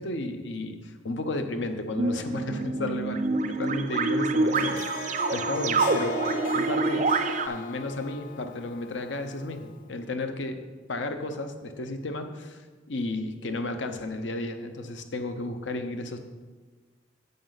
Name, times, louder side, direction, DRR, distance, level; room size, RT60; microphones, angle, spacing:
voice 1, 0.0-7.1 7.4-16.2, left 2 dB, 75° left, 7 dB, 0.8 m, -33 dB
sound 1, 2.0-7.5, right 3 dB, 40° right, 0.4 m, -26 dB
Harp, 4.4-9.8, left 4 dB, 45° left, 0.3 m, -38 dB
9.4 x 7.7 x 4.0 m, 1.4 s
head